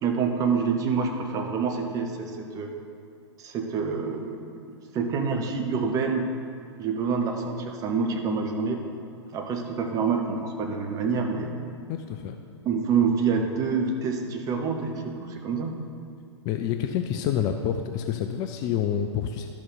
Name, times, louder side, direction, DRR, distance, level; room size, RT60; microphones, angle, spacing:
voice 1, 0.0-2.7 3.4-6.3 6.8-8.8 9.3-11.5 12.6-15.7, right 5 dB, 25° right, 3 dB, 0.9 m, -27 dB
voice 2, 11.9-12.4 16.4-19.5, left 9 dB, 25° left, 6 dB, 0.3 m, -28 dB
12.0 x 5.9 x 4.1 m, 2.6 s
figure-of-eight pair, 105°, 15 cm